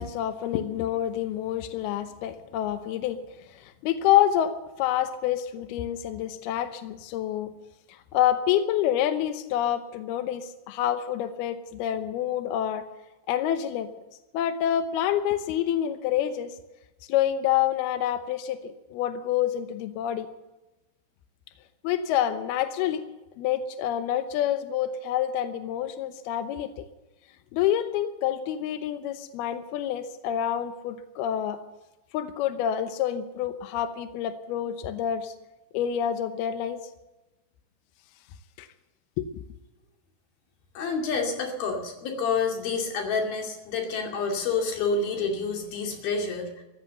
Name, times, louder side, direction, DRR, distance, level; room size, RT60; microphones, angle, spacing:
voice 1, 0.0-3.2 3.5-7.5 8.1-12.8 13.3-13.9 14.3-16.5 17.1-20.3 21.8-23.0 23.4-26.8 27.5-31.6 32.1-35.3 35.7-36.8 38.6-38.7 39.2-39.3, left 11 dB, 80° left, 9 dB, 2.3 m, -27 dB
voice 2, 40.7-46.6, left 4 dB, 55° left, 2 dB, 4.1 m, -28 dB
15.0 x 13.0 x 6.9 m, 1.0 s
omnidirectional pair, 5.6 m